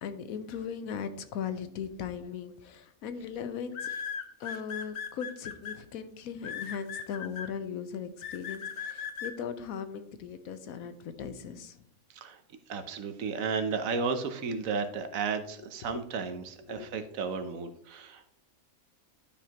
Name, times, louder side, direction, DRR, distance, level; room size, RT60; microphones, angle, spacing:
voice 1, 0.0-3.9 4.4-11.8 15.9-16.0 16.7-17.0, left 7 dB, 85° left, 11 dB, 1.2 m, -38 dB
sound 1, 2.2-2.5 3.7-5.7 6.4-7.5 8.2-9.3, left 7 dB, 60° left, 1.1 m, -37 dB
voice 2, 12.1-12.4 12.7-18.4, right 5 dB, 75° right, 9 dB, 1.2 m, -33 dB
11.5 x 5.0 x 2.9 m, 0.70 s
omnidirectional pair, 1.4 m